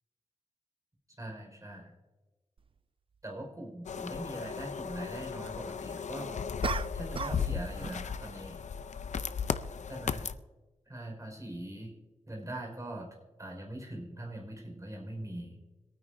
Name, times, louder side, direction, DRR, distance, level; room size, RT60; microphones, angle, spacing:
voice 1, 1.2-1.9 3.2-6.4 6.9-8.6 9.9-10.3 10.8-11.9 12.3-13.1 13.4-15.6, right 1 dB, 25° right, -1 dB, 4.9 m, -42 dB
sound 1, 2.6-2.7 6.6-7.5 7.8-8.1, right 5 dB, 45° right, 0.5 m, -35 dB
sound 2, 3.9-10.3, left 6 dB, 75° left, 0.6 m, -36 dB
26.0 x 9.5 x 2.7 m, 1.2 s
cardioid pair, 65°, 12 cm